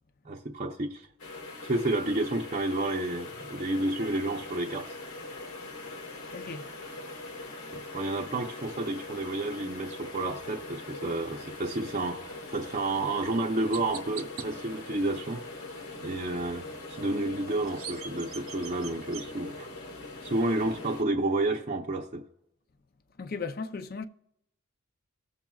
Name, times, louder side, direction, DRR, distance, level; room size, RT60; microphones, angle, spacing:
voice 1, 0.2-1.1 1.6-5.0 7.7-15.4 16.0-16.7 17.0-19.7 20.2-22.2, right 2 dB, 35° right, 0.6 m, -30 dB
sound 1, 1.2-21.0, left 2 dB, 90° left, 1.5 m, -42 dB
voice 2, 6.3-6.7 23.2-24.1, left 4 dB, 45° left, 0.5 m, -36 dB
Chirp tweet, 12.8-13.0 13.7-14.5 17.4-19.3, right 8 dB, 90° right, 0.9 m, -42 dB
18.5 x 7.3 x 2.3 m
head